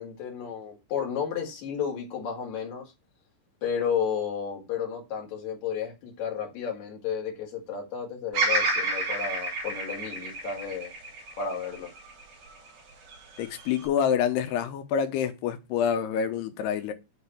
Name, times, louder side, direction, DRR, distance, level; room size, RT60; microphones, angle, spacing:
voice 1, 0.0-2.9 3.6-10.9 11.4-11.9, left 7 dB, 50° left, 3.1 m, -32 dB
Bird vocalization bird call bird song, 8.3-12.6 13.1-13.9, right 2 dB, 65° right, 5.1 m, -30 dB
voice 2, 13.4-16.9, left 8 dB, 85° left, 3.0 m, -27 dB
9.1 x 3.9 x 7.2 m
omnidirectional pair, 4.7 m